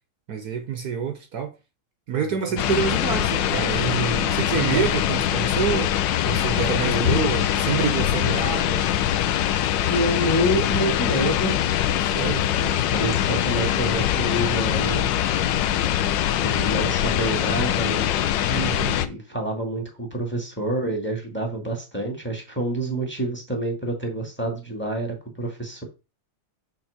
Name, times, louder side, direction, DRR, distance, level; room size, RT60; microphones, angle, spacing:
voice 1, 0.3-1.5 2.1-5.9 6.2-8.8 12.0-12.4 18.5-18.9, right 7 dB, 60° right, 1.4 m, -27 dB
sound 1, 2.6-19.1, left 11 dB, 80° left, 1.4 m, -23 dB
voice 2, 4.6-4.9 6.8-7.6 9.8-11.5 12.6-15.1 16.3-18.0 18.8-25.8, right 1 dB, 5° left, 1.9 m, -28 dB
6.2 x 4.4 x 6.4 m
omnidirectional pair, 2.0 m